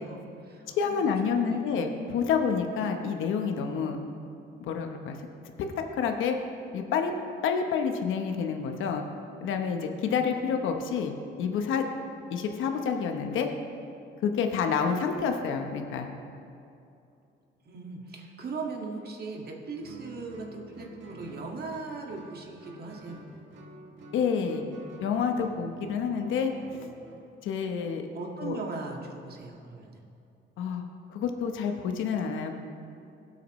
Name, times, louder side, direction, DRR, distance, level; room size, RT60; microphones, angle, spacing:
voice 1, 0.0-1.7 17.7-23.2 28.1-30.0, right 3 dB, 50° right, 0 dB, 1.9 m, -39 dB
voice 2, 0.7-4.0 4.6-5.2 6.0-6.4 6.7-7.1 7.4-9.0 9.4-11.8 12.3-13.5 14.2-16.1 24.1-24.6 25.0-26.5 27.4-28.0 28.4-28.6 30.6-30.8 31.1-32.5, left 6 dB, 85° left, 4 dB, 1.0 m, -28 dB
Guitar, 19.8-27.3, right 2 dB, 70° right, 1.8 m, -48 dB
19.5 x 8.2 x 3.1 m, 2.6 s
cardioid pair, 90°, 20 cm